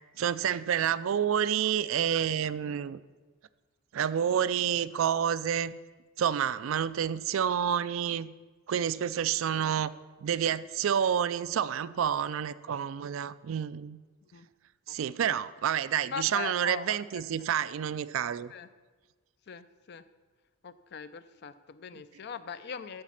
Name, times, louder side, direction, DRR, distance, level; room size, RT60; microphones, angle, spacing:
voice 1, 0.2-3.0 3.9-5.7 6.2-8.3 8.7-9.9 10.2-14.0 14.9-18.5 21.9-22.0, right 8 dB, 65° right, 16 dB, 0.3 m, -29 dB
voice 2, 14.9-15.4 16.1-17.2 18.5-18.7 19.5-20.0 20.6-23.0, left 6 dB, 50° left, 13 dB, 0.5 m, -41 dB
13.5 x 5.0 x 5.7 m, 1.3 s
head